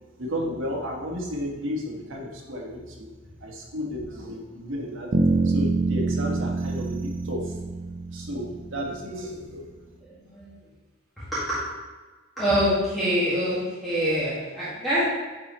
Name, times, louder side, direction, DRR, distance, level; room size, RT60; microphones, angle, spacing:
voice 1, 0.2-3.1 3.4-7.6 8.1-9.7, equal, 80° right, -1 dB, 1.4 m, -33 dB
sound 1, 5.1-9.1, right 3 dB, 45° right, 0.5 m, -26 dB
voice 2, 10.0-10.5 11.2-11.6 12.4-15.0, equal, ahead, -14 dB, 1.8 m, -25 dB
9.4 x 4.8 x 3.1 m, 1.3 s
head